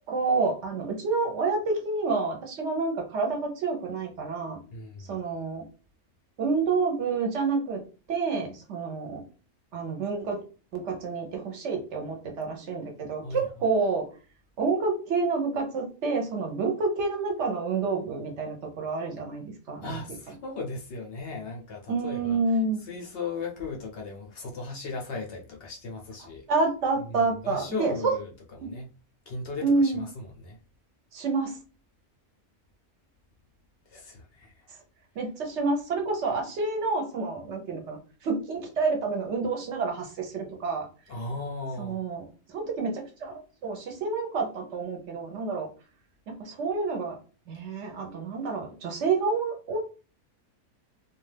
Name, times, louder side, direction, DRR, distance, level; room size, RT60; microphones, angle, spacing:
voice 1, 0.0-4.6 5.1-5.6 6.4-7.8 8.1-9.2 9.7-10.4 10.7-14.1 14.6-20.0 21.9-22.8 26.5-28.1 29.6-30.0 31.1-31.6 35.2-40.9 41.8-45.7 46.4-47.2 47.5-49.8, right 4 dB, 60° right, 0.8 m, -28 dB
voice 2, 4.7-5.2 13.2-13.5 19.8-22.4 22.8-26.4 27.1-28.3 28.6-28.9 29.3-30.6 33.9-34.7 41.1-42.0, left 3 dB, 65° left, 0.6 m, -37 dB
2.3 x 2.3 x 3.2 m
omnidirectional pair, 1.5 m